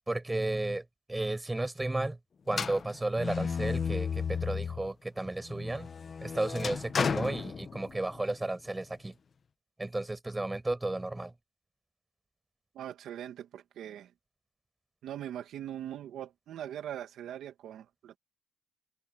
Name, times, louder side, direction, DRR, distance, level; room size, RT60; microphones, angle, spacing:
voice 1, 0.1-2.2 2.5-5.9 6.2-9.1 9.8-11.3, right 2 dB, 15° right, 7.3 m, -33 dB
sound 1, 2.5-4.9 5.3-8.2, left 6 dB, 45° left, 1.3 m, -33 dB
voice 2, 12.7-14.1 15.0-18.2, right 11 dB, 75° right, 2.1 m, -41 dB
cardioid pair, 90°, 0 cm